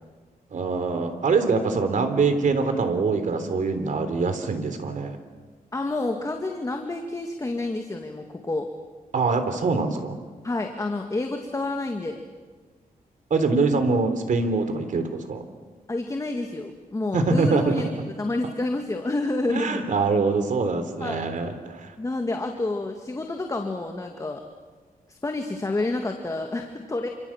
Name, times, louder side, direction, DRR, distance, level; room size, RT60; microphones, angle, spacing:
voice 1, 0.5-5.2 9.1-10.2 13.3-15.4 17.1-17.8 19.5-21.9, right 4 dB, 60° right, 8 dB, 3.4 m, -24 dB
voice 2, 5.7-8.7 10.4-12.2 15.9-17.9 18.2-19.8 21.0-21.3 22.0-24.4 25.1-27.1, left 2 dB, 20° left, 3 dB, 2.1 m, -29 dB
28.0 x 26.0 x 7.4 m, 1.4 s
wide cardioid pair, 120°, 15 cm